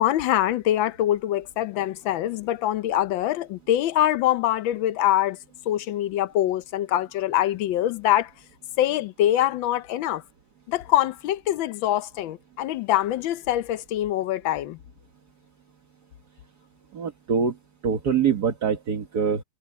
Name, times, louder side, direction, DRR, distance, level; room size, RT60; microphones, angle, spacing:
voice 1, 0.0-5.4 5.7-8.3 8.8-10.2 10.7-14.8, left 12 dB, 80° left, 1.4 m, -24 dB
voice 2, 16.9-17.6 17.8-19.4, right 6 dB, 55° right, 2.0 m, -24 dB
omnidirectional pair, 2.1 m